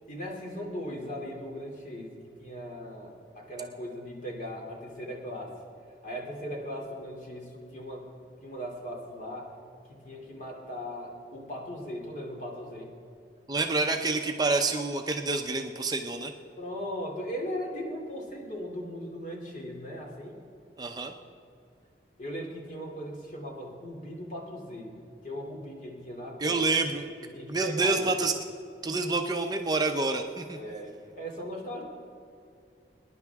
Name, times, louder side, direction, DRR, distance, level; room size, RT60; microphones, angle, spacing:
voice 1, 0.1-5.5 6.0-8.1 8.4-9.5 9.9-12.9 16.6-20.4 22.2-24.9 25.2-26.9 27.2-28.0 30.5-31.8, equal, 45° left, -1 dB, 2.9 m, -38 dB
voice 2, 13.5-16.3 20.8-21.1 26.4-27.1 27.5-28.3 28.8-30.6, right 3 dB, 25° right, 4 dB, 0.6 m, -28 dB
25.0 x 10.5 x 3.6 m, 2.4 s
head